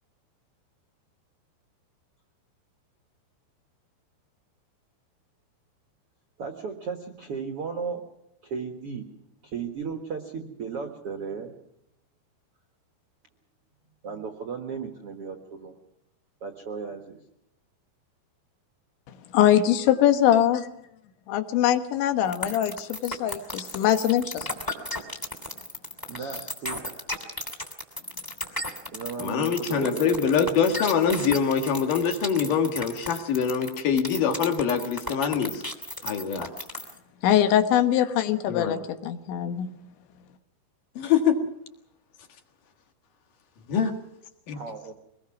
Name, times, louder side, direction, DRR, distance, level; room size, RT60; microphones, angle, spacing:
voice 1, 6.4-8.1 8.4-9.1 9.4-11.5 14.0-15.8 16.4-17.2 26.1-26.8 28.9-30.4 44.5-44.9, right 5 dB, 90° right, 4 dB, 1.3 m, -35 dB
voice 2, 19.3-20.6 21.3-24.5 37.2-39.7, left 11 dB, 80° left, 8 dB, 3.5 m, -22 dB
sound 1, 22.3-37.0, left 1 dB, 10° left, 1.3 m, -34 dB
voice 3, 29.2-35.6 36.0-36.5 38.5-38.7 41.0-41.4 43.7-44.0 44.5-44.6, left 7 dB, 55° left, 5 dB, 2.8 m, -24 dB
24.5 x 20.0 x 6.0 m, 0.81 s
omnidirectional pair, 5.4 m